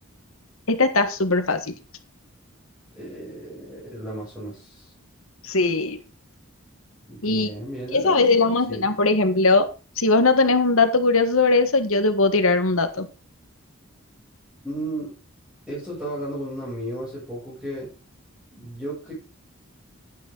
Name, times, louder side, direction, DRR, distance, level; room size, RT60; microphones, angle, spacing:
voice 1, 0.7-1.7 5.4-6.0 7.2-7.5 7.9-9.7 10.0-13.1, left 3 dB, 75° left, 8 dB, 1.6 m, -20 dB
voice 2, 3.0-4.9 7.1-8.3 8.7-8.9 14.6-15.2 15.7-17.9 18.5-19.1, right 1 dB, 5° right, -8 dB, 7.6 m, -34 dB
12.0 x 9.4 x 3.9 m, 0.31 s
head